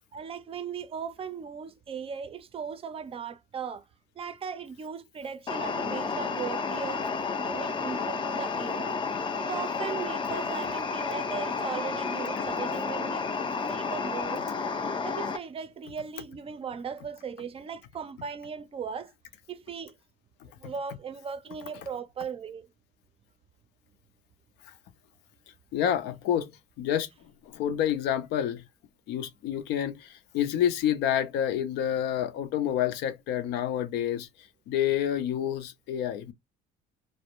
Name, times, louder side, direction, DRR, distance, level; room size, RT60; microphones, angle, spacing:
voice 1, 0.1-3.9 4.2-7.1 7.4-9.0 9.4-13.3 13.6-14.4 15.0-19.1 19.5-19.9 20.4-22.7, right 6 dB, 35° right, 0.4 m, -38 dB
sound 1, 5.5-15.4, left 4 dB, 30° left, 0.4 m, -31 dB
voice 2, 25.7-26.5 26.8-27.1 27.5-28.6 29.1-34.3 34.7-36.3, left 10 dB, 85° left, 0.5 m, -28 dB
2.4 x 2.1 x 2.8 m
cardioid pair, 110°, 17 cm